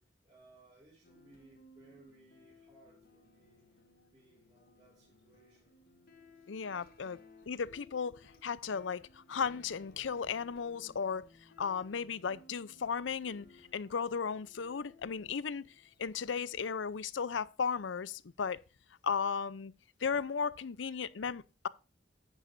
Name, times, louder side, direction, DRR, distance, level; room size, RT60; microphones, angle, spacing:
voice 1, 0.0-3.6 4.1-5.8, right 2 dB, 30° right, 4.4 m, -63 dB
sound 1, 1.0-16.7, left 2 dB, 55° left, 2.0 m, -61 dB
voice 2, 6.5-7.2 7.5-11.3 11.6-13.5 13.7-15.7 16.0-18.6 19.0-19.7 20.0-21.7, left 6 dB, 85° left, 0.5 m, -35 dB
10.5 x 9.1 x 2.6 m
head